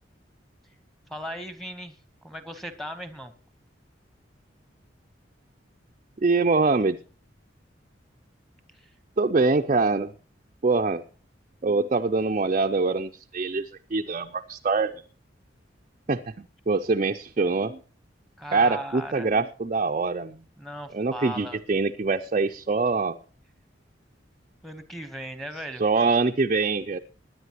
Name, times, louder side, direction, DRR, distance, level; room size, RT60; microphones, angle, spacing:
voice 1, 1.1-2.0 2.2-3.3 8.7-8.9 18.4-19.3 20.6-21.6 24.6-25.8, equal, ahead, 10 dB, 1.1 m, -37 dB
voice 2, 6.2-7.0 9.2-10.1 10.6-11.0 11.6-14.9 16.1-17.8 18.5-20.4 20.9-23.2 25.8-27.0, right 3 dB, 40° right, 4 dB, 0.5 m, -24 dB
20.5 x 10.0 x 3.0 m, 0.36 s
head